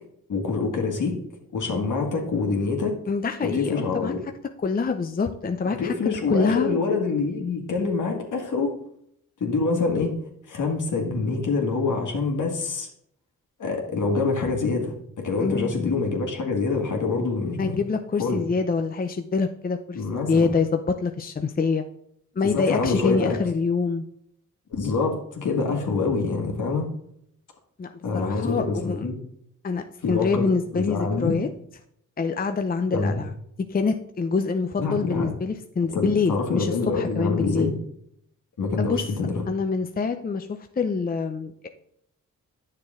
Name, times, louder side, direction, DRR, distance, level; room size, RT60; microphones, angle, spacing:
voice 1, 0.3-1.2 1.5-3.0 3.4-4.2 5.6-8.7 9.4-10.1 10.5-12.9 13.6-17.8 18.2-18.4 19.9-20.6 22.5-23.4 24.7-26.9 28.0-29.2 30.0-30.5 30.7-31.3 32.9-33.2 34.8-35.3 35.9-37.7 38.6-39.4, left 4 dB, 70° left, 1 dB, 2.1 m, -26 dB
voice 2, 3.1-4.1 4.6-5.9 6.3-6.8 15.4-15.7 17.6-20.0 20.3-21.8 22.4-24.0 27.8-29.1 29.6-31.5 32.2-33.3 33.7-37.7 38.8-39.0 39.5-41.7, left 4 dB, 30° left, 6 dB, 0.6 m, -25 dB
9.6 x 6.6 x 3.7 m, 0.72 s
cardioid pair, 75°, 32 cm